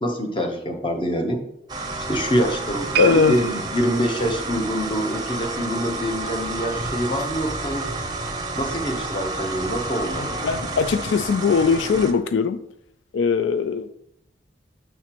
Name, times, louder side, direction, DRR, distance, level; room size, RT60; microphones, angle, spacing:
voice 1, 0.0-1.4 2.1-7.9 8.6-10.4, equal, 25° left, 4 dB, 0.8 m, -25 dB
sound 1, 1.7-12.1, right 2 dB, 25° right, 0.7 m, -30 dB
sound 2, 2.9-6.2 6.5-6.8 7.5-7.6, right 11 dB, 60° right, 0.3 m, -32 dB
voice 2, 3.0-3.3 10.4-12.6 13.1-13.9, left 5 dB, 90° left, 11 dB, 0.4 m, -20 dB
6.7 x 3.1 x 5.8 m, 0.77 s
head